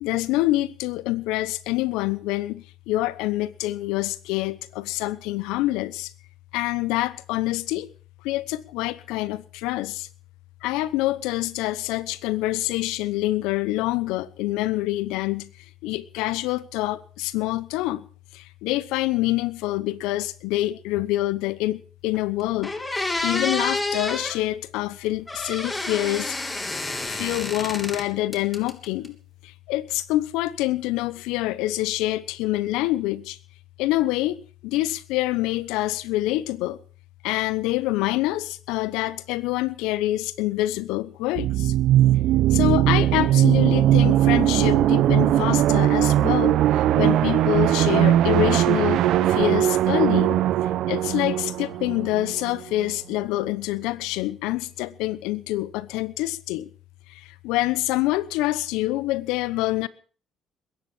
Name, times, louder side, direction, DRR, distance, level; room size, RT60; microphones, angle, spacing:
voice 1, 0.0-6.1 6.5-7.9 8.2-10.1 10.6-15.5 15.8-18.0 18.3-22.7 23.2-26.4 27.1-29.2 29.7-33.4 33.8-36.8 37.2-41.7 42.5-50.4 50.9-56.7 57.4-59.9, left 17 dB, 80° left, 0.9 m, -26 dB
sound 1, 22.1-22.2 22.6-24.4 25.3-28.0 28.3-29.1, left 2 dB, 20° left, 3.1 m, -29 dB
sound 2, 41.4-52.9, right 12 dB, 75° right, 1.1 m, -20 dB
21.5 x 10.5 x 6.1 m
supercardioid pair, 65°, 0 cm